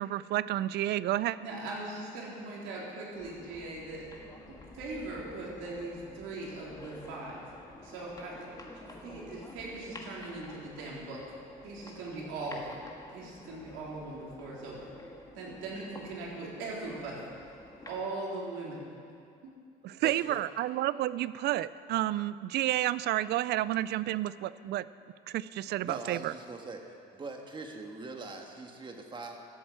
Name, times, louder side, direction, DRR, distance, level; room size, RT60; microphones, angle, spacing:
voice 1, 0.0-1.4 19.8-24.9 25.3-26.3, right 14 dB, 60° right, 17 dB, 0.4 m, -30 dB
voice 2, 1.4-4.0 4.5-7.5 7.8-11.2 11.6-12.8 13.1-14.9 15.3-17.3 17.9-18.8 19.4-19.5, right 2 dB, 80° right, -4 dB, 3.5 m, -40 dB
sound 1, 3.1-18.0, left 2 dB, 20° left, 1.7 m, -50 dB
voice 3, 20.0-20.5 25.8-29.4, right 3 dB, 25° right, 3 dB, 1.6 m, -42 dB
13.5 x 7.4 x 7.9 m, 2.4 s
cardioid pair, 105°, 20 cm